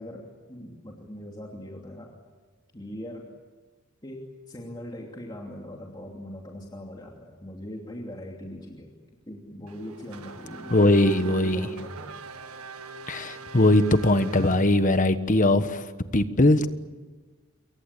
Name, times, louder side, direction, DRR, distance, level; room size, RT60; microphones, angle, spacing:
voice 1, 0.0-2.1 2.7-3.3 4.0-8.9 9.3-12.1, equal, 20° left, -1 dB, 2.8 m, -40 dB
Race car auto racing / Accelerating revving vroom, 9.7-15.2, right 4 dB, 85° right, 2.0 m, -43 dB
voice 2, 10.7-11.7 13.1-15.8 16.1-16.7, left 1 dB, 35° left, 10 dB, 1.3 m, -20 dB
28.0 x 23.0 x 8.5 m, 1.3 s
head